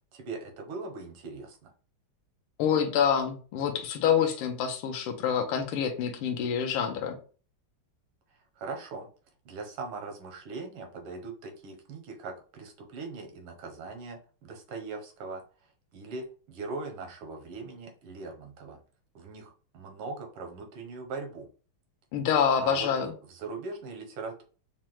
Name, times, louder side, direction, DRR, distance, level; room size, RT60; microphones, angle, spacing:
voice 1, 0.1-1.7 8.6-9.1 9.5-15.4 15.9-18.8 19.2-21.5 22.6-22.9 23.3-24.4, right 3 dB, 80° right, 3 dB, 1.7 m, -40 dB
voice 2, 2.6-7.2 22.1-23.1, left 7 dB, 85° left, 4 dB, 1.5 m, -27 dB
5.5 x 2.0 x 3.0 m, 0.39 s
omnidirectional pair, 2.4 m